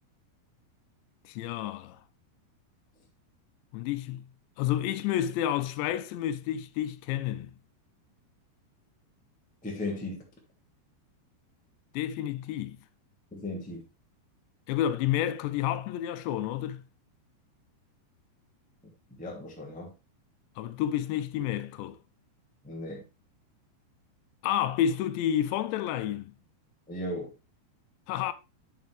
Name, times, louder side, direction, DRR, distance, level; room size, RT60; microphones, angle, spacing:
voice 1, 1.3-2.0 3.7-4.3 4.6-7.5 11.9-12.8 14.7-16.9 20.6-22.0 24.4-26.3 28.1-28.3, left 11 dB, 80° left, 2.8 m, -30 dB
voice 2, 9.6-10.2 13.3-13.8 18.8-19.9 22.6-23.0 26.9-27.3, left 1 dB, 5° left, 0.8 m, -36 dB
9.3 x 6.5 x 3.3 m
omnidirectional pair, 5.2 m